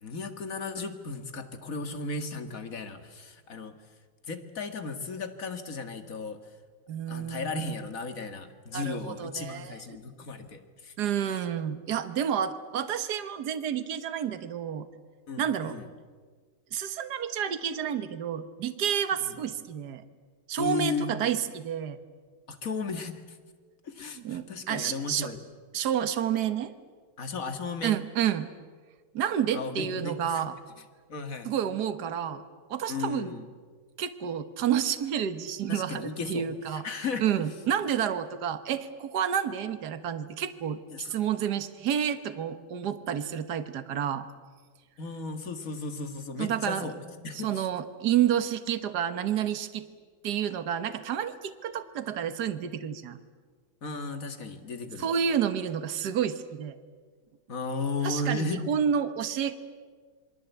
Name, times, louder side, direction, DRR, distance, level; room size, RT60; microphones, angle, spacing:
voice 1, 0.0-3.7 4.3-6.4 7.1-10.9 11.2-11.4 15.3-15.9 19.2-19.4 20.6-21.1 22.5-23.4 23.8-25.4 27.2-28.0 29.5-30.5 31.1-31.5 32.9-33.5 35.7-37.4 40.9-41.1 45.0-47.6 53.8-55.1 57.5-58.7, left 3 dB, 40° left, 8 dB, 2.1 m, -35 dB
voice 2, 6.9-7.7 8.7-9.8 11.0-14.9 15.4-15.8 16.7-20.0 20.5-22.0 24.1-25.3 25.7-26.7 27.8-28.5 29.1-30.5 31.4-32.4 32.7-33.3 34.0-44.2 46.4-46.9 47.3-49.9 50.2-53.2 55.0-56.8 58.0-59.5, right 9 dB, 50° right, 10 dB, 1.7 m, -30 dB
27.0 x 23.0 x 8.3 m, 1.5 s
omnidirectional pair, 2.4 m